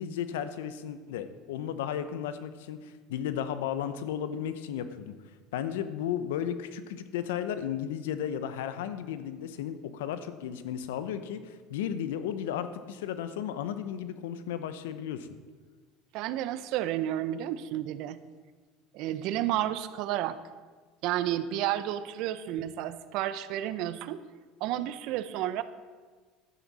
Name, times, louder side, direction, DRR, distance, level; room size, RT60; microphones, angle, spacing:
voice 1, 0.0-5.1 5.5-15.3, left 9 dB, 85° left, 11 dB, 0.7 m, -34 dB
voice 2, 16.1-18.2 18.9-20.4 21.0-24.2 24.6-25.6, right 12 dB, 65° right, 13 dB, 0.6 m, -31 dB
12.0 x 9.4 x 4.2 m, 1.4 s
supercardioid pair, 100°, 0 cm